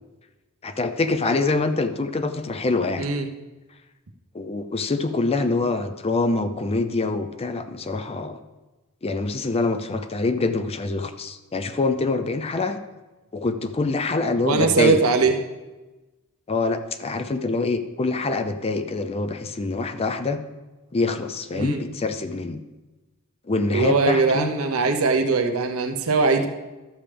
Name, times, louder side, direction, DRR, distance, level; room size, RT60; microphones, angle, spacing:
voice 1, 0.6-3.1 4.3-8.4 9.0-12.8 13.3-15.0 15.3-15.4 16.5-20.4 20.9-22.6 23.5-24.5, left 3 dB, 30° left, 9 dB, 0.5 m, -25 dB
voice 2, 14.4-15.4 21.5-21.8 23.7-26.5, right 4 dB, 75° right, 5 dB, 0.9 m, -21 dB
12.5 x 7.3 x 3.4 m, 1.1 s
head